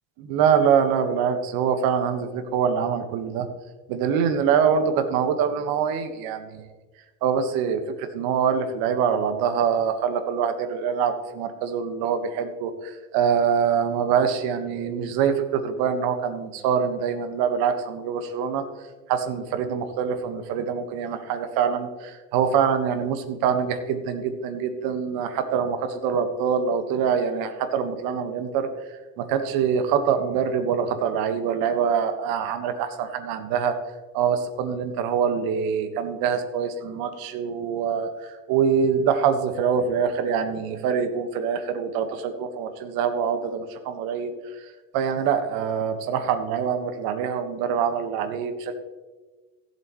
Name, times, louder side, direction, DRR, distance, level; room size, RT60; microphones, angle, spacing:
voice 1, 0.2-3.5 3.9-6.7 7.2-18.6 19.1-28.7 29.2-33.8 34.1-44.3 44.9-48.8, right 7 dB, 65° right, 8 dB, 1.5 m, -24 dB
17.0 x 7.6 x 3.1 m, 1.3 s
hypercardioid pair, 80°, 39 cm